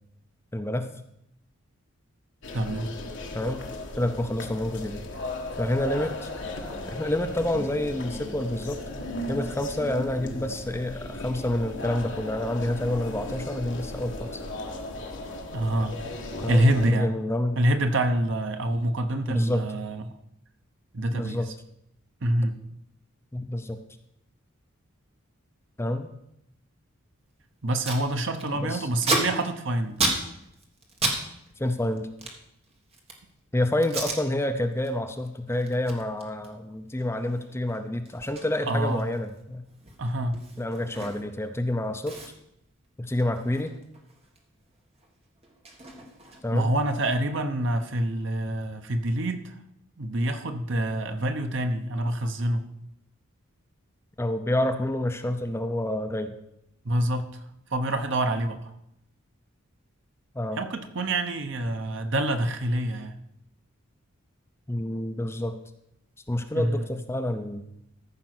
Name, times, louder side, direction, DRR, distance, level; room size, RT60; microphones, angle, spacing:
voice 1, 0.5-0.9 3.3-3.6 4.0-5.1 5.6-6.3 6.9-8.8 9.3-14.4 16.4-17.6 19.3-19.6 21.1-21.5 23.3-23.8 25.8-26.1 28.5-28.9 31.6-32.1 33.5-39.6 40.6-42.2 43.0-43.7 46.4-46.7 54.2-56.3 60.3-60.6 64.7-65.6 66.3-67.7, left 1 dB, 10° left, 0.5 m, -28 dB
sound 1, 2.4-16.9, left 2 dB, 55° left, 1.5 m, -36 dB
voice 2, 2.5-3.0 15.5-16.0 16.5-17.1 17.6-20.2 20.9-21.4 22.2-22.6 27.6-30.0 38.7-39.1 40.0-40.4 46.5-49.5 50.0-52.7 56.8-57.4 57.7-58.7 60.6-63.2 66.5-66.9, right 1 dB, 60° right, 0.9 m, -26 dB
Packing tape duct tape, 27.3-27.4 27.6-28.0 28.3-31.2 31.5-33.3 33.8-34.2 34.7-34.9 35.2-41.5 41.7-41.8 42.0-44.4 44.7-46.7, right 2 dB, 30° right, 1.5 m, -33 dB
14.0 x 5.3 x 6.1 m
head